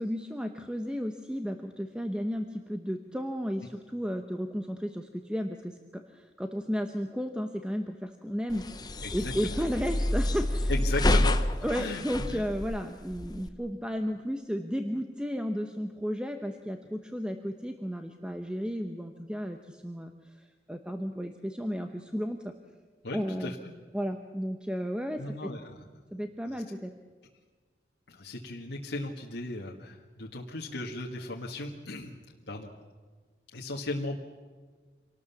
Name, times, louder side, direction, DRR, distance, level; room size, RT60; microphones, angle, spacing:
voice 1, 0.0-10.7 11.6-22.5 23.1-23.5 23.9-25.5 26.1-26.9, equal, 5° right, 6 dB, 0.9 m, -33 dB
sound 1, 8.5-13.5, left 1 dB, 25° left, 0.9 m, -28 dB
voice 2, 9.0-9.6 10.7-11.4 11.8-12.0 12.3-12.4 23.0-23.6 25.2-25.8 26.5-26.6 28.1-32.2 32.5-32.7 33.5-34.2, left 2 dB, 85° left, -1 dB, 1.8 m, -36 dB
26.0 x 19.0 x 7.1 m, 1.5 s
head